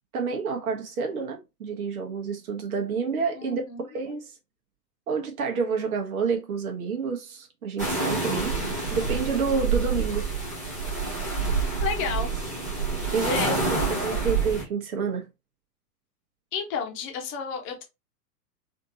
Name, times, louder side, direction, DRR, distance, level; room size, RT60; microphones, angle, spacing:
voice 1, 0.1-4.2 5.1-8.5 8.9-10.3 13.1-13.4 14.0-15.2, right 5 dB, 55° right, 1.1 m, -29 dB
voice 2, 3.4-3.9 11.8-12.3 13.0-13.5 16.5-17.8, left 6 dB, 25° left, 0.9 m, -32 dB
sound 1, 7.8-14.6, right 4 dB, 15° right, 0.3 m, -27 dB
3.5 x 2.7 x 2.7 m
figure-of-eight pair, 100°, 50 cm